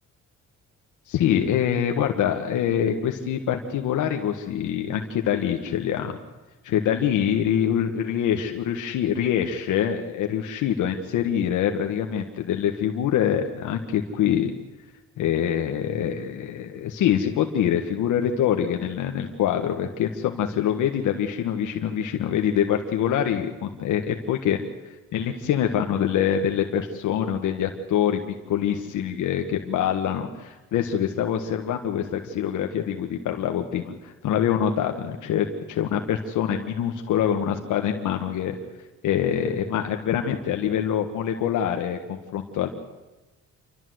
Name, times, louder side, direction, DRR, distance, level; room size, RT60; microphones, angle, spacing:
voice 1, 1.1-6.2 6.6-14.5 15.2-28.2 28.5-38.6 39.0-42.7, left 9 dB, 80° left, 4 dB, 1.5 m, -25 dB
28.5 x 13.0 x 7.9 m, 1.1 s
cardioid pair, 90°, 30 cm